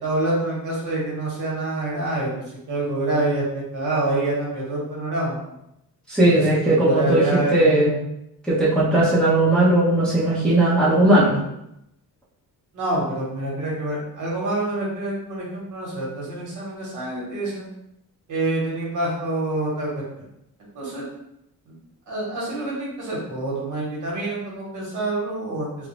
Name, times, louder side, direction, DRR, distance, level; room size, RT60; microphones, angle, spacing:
voice 1, 0.0-5.4 6.2-7.9 12.7-17.7 18.3-20.2 20.7-21.1 21.7-21.8 22.1-25.9, right 2 dB, 60° right, -4 dB, 1.1 m, -27 dB
voice 2, 6.1-7.2 7.5-7.9 8.5-11.4, right 1 dB, ahead, -9 dB, 0.7 m, -18 dB
3.6 x 2.0 x 3.0 m, 0.83 s
cardioid pair, 160°, 34 cm